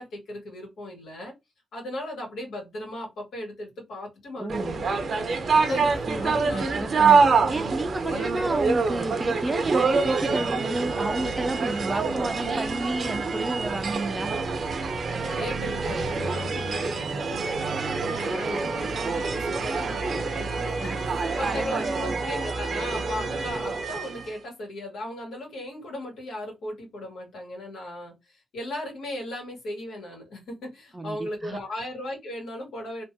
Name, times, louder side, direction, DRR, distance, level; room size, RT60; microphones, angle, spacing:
voice 1, 0.0-1.3 1.7-5.1 5.4-6.8 8.0-8.3 11.4-11.5 15.1-28.1 28.5-33.0, left 1 dB, 80° left, 2.0 m, -37 dB
voice 2, 4.4-4.7 6.1-7.2 7.5-14.4 18.2-18.4 20.8-21.0 21.4-22.0 30.9-31.6, right 2 dB, 20° right, 0.5 m, -31 dB
sound 1, 4.5-24.3, right 4 dB, 60° right, 0.7 m, -26 dB
3.4 x 2.5 x 2.7 m
cardioid pair, 80°, 0 cm